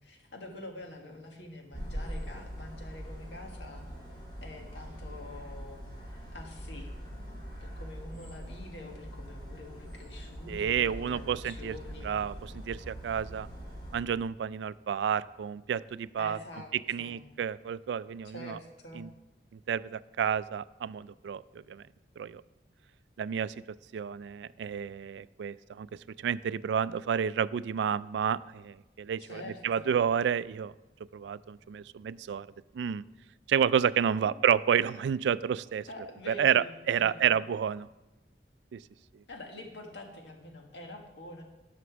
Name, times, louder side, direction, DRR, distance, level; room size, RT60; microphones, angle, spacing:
voice 1, 0.0-3.8 4.4-12.1 16.2-16.7 17.0-17.2 18.3-19.1 29.2-30.0 34.2-34.3 35.9-37.4 39.3-41.4, left 2 dB, 90° left, 2 dB, 1.7 m, -46 dB
sound 1, 1.7-14.0, equal, 25° left, 4.1 m, -43 dB
voice 2, 10.5-11.8 12.0-13.5 13.9-16.4 16.9-18.6 18.9-19.1 19.5-21.8 22.2-22.4 23.2-23.6 23.9-25.9 26.2-30.7 31.1-32.5 32.7-33.0 33.5-35.9 36.3-37.9 38.7-38.8 39.1-39.2, right 8 dB, 75° right, 18 dB, 0.3 m, -30 dB
11.5 x 5.9 x 6.1 m, 1.0 s
head